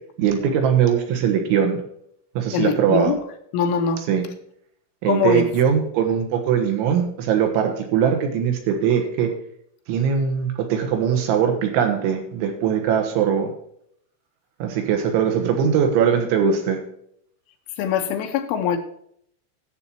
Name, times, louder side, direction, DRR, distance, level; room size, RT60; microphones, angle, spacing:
voice 1, 0.2-1.8 2.4-3.1 4.1-4.3 5.0-9.3 9.9-13.5 14.6-16.8, right 8 dB, 75° right, 4 dB, 3.6 m, -21 dB
voice 2, 2.5-3.2 3.5-4.0 5.1-5.5 17.8-18.8, left 6 dB, 80° left, 6 dB, 3.2 m, -22 dB
11.5 x 7.7 x 4.4 m, 0.69 s
omnidirectional pair, 5.9 m